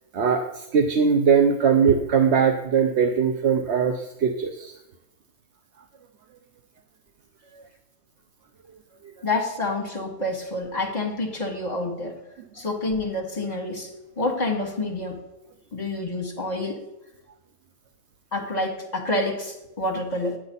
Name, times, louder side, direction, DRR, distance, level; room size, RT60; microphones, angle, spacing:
voice 1, 0.1-4.7 7.5-7.6, right 6 dB, 55° right, 5 dB, 1.0 m, -21 dB
voice 2, 9.2-12.2 12.5-13.9 14.2-15.2 15.7-16.8 18.3-20.4, left 2 dB, 30° left, 0 dB, 2.3 m, -28 dB
13.0 x 10.0 x 4.1 m, 0.93 s
omnidirectional pair, 1.5 m